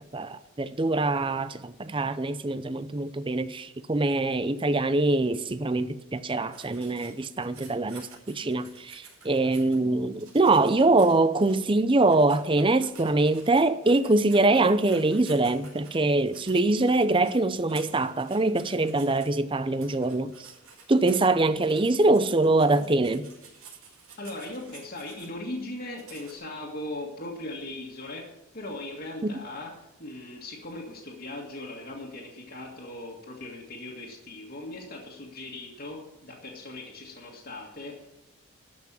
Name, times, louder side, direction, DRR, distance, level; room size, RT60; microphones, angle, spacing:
voice 1, 0.0-20.5 20.9-23.3 29.2-29.3, right 2 dB, 25° right, 0.5 m, -24 dB
sound 1, 6.5-9.8 10.1-11.6 12.0-19.3 19.7-21.3 21.6-25.3 26.0-26.4, right 5 dB, 85° right, 5.1 m, -51 dB
voice 2, 24.2-28.2 28.5-38.1, left 2 dB, 45° left, 1.9 m, -39 dB
13.0 x 6.0 x 8.8 m
head